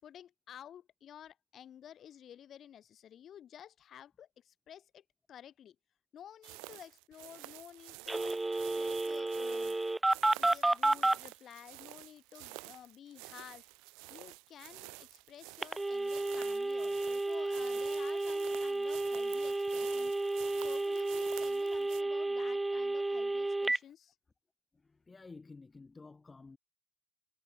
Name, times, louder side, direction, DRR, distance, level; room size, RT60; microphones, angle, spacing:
voice 1, 0.0-5.8 6.1-8.4 8.8-9.8 10.4-13.7 14.1-20.2 20.6-24.2, left 10 dB, 45° left, 6.0 m, -53 dB
sound 1, 6.4-22.0, right 29 dB, 75° right, 0.6 m, -50 dB
Telephone, 8.1-11.2 15.6-23.8, right 2 dB, 10° right, 0.6 m, -32 dB
voice 2, 24.7-26.6, left 3 dB, 20° left, 2.5 m, -52 dB
supercardioid pair, 100°, 0 cm